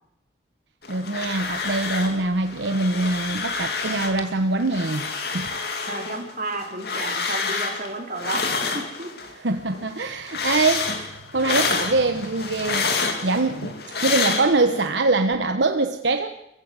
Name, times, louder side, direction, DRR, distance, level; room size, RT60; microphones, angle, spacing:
sound 1, 0.8-2.2 2.5-4.3 4.6-9.3 9.7-14.9, left 4 dB, 55° left, 2.5 m, -28 dB
voice 1, 0.9-5.1 5.3-5.5 9.4-13.7 14.0-16.3, right 3 dB, 70° right, 7 dB, 1.0 m, -23 dB
voice 2, 5.9-9.1, right 2 dB, 45° right, 3 dB, 3.2 m, -32 dB
25.0 x 15.5 x 8.1 m, 0.85 s
head